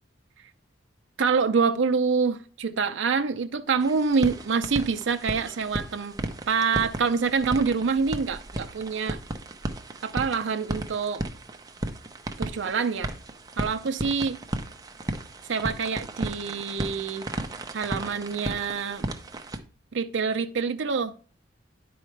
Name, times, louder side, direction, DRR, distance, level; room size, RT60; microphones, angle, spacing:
voice 1, 1.2-6.2 6.5-9.2 10.0-11.2 12.4-13.1 13.6-14.4 15.5-17.3 17.7-19.1 19.9-21.1, right 5 dB, 70° right, 0.5 m, -26 dB
sound 1, 3.8-19.6, right 1 dB, 20° right, 0.7 m, -35 dB
10.5 x 4.7 x 3.2 m
head